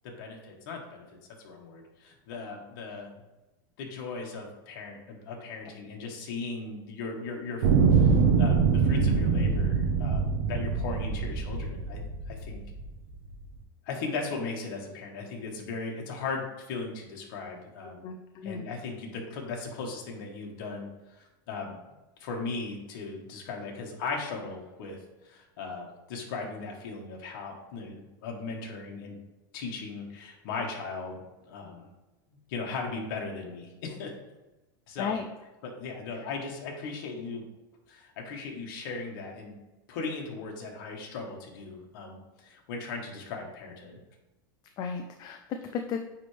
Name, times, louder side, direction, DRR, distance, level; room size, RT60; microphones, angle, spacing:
voice 1, 0.0-3.2 3.8-12.6 13.8-18.0 18.4-20.9 21.2-21.8 22.2-29.2 29.5-31.9 32.5-34.1 34.9-35.2 35.6-37.4 37.9-39.6 39.9-44.0, left 4 dB, 65° left, 0 dB, 1.4 m, -38 dB
sound 1, 7.6-12.9 13.6-13.7, right 5 dB, 70° right, 0.8 m, -24 dB
voice 2, 18.0-18.6 35.0-35.2 44.8-46.0, left 6 dB, 35° left, 5 dB, 0.4 m, -34 dB
9.1 x 3.4 x 3.3 m, 1.0 s
supercardioid pair, 140°, 12 cm